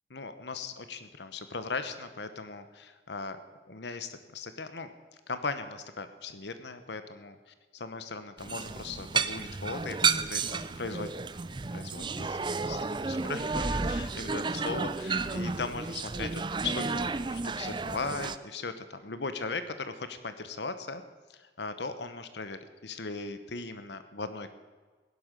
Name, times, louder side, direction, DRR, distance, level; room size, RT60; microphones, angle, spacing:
voice 1, 0.1-3.4 3.7-4.9 5.3-7.5 7.8-11.1 11.7-21.0 21.3-24.5, left 4 dB, 80° left, 10 dB, 1.1 m, -38 dB
sound 1, 8.4-18.4, right 4 dB, 25° right, 0.5 m, -32 dB
16.5 x 11.5 x 6.7 m, 1.4 s
head